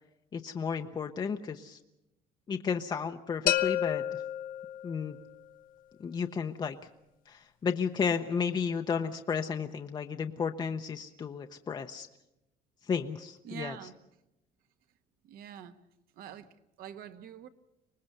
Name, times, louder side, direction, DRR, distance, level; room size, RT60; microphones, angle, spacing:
voice 1, 0.3-1.8 2.5-4.2 4.8-5.2 6.0-6.8 7.3-12.1 12.8-13.8, left 6 dB, 25° left, 5 dB, 0.7 m, -33 dB
sound 1, 3.5-5.3, left 12 dB, 60° left, 0.9 m, -30 dB
voice 2, 13.4-14.0 15.2-15.8 16.1-17.5, right 9 dB, 65° right, 9 dB, 1.4 m, -45 dB
24.5 x 20.0 x 6.6 m, 0.92 s
cardioid pair, 135°, 16 cm